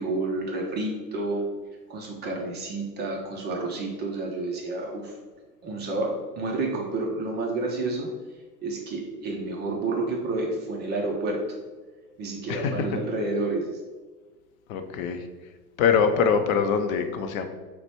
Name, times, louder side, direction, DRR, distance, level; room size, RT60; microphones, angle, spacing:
voice 1, 0.0-1.4 1.9-5.1 5.6-8.1 8.6-11.4 12.2-13.7, right 2 dB, 20° right, 0 dB, 0.4 m, -29 dB
voice 2, 12.5-12.9 14.7-15.2 15.8-17.5, left 6 dB, 55° left, 7 dB, 0.5 m, -23 dB
4.0 x 2.2 x 4.5 m, 1.3 s
hypercardioid pair, 95°, 50 cm